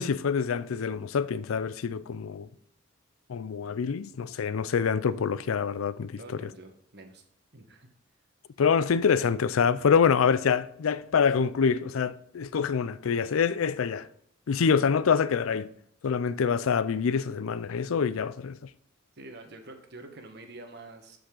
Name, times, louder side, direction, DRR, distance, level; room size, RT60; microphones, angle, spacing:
voice 1, 0.0-2.5 3.3-6.5 8.6-14.1 14.5-15.7 16.0-18.6, left 6 dB, 90° left, 0.4 m, -26 dB
voice 2, 6.1-7.2 7.5-7.9 19.2-21.2, right 2 dB, 55° right, 1.3 m, -46 dB
13.0 x 5.2 x 3.8 m
head